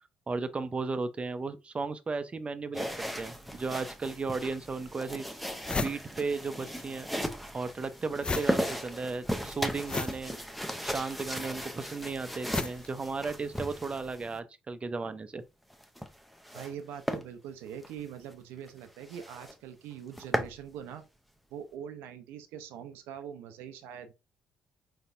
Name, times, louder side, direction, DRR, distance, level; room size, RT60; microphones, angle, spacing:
voice 1, 0.3-5.2 5.7-7.1 7.5-10.4 10.8-15.4, right 4 dB, 30° right, 0.7 m, -35 dB
sound 1, 2.7-14.4 15.7-16.7 17.1-17.2 17.7-17.9 18.3-18.4 18.7-18.8 19.1-19.5 19.9-20.6, equal, ahead, 0.8 m, -36 dB
sound 2, 5.3-6.9 7.1-13.7, left 3 dB, 25° left, 0.4 m, -37 dB
voice 2, 16.5-21.1 21.5-24.1, right 8 dB, 75° right, 0.6 m, -43 dB
4.4 x 4.1 x 2.6 m
hypercardioid pair, 55°, 4 cm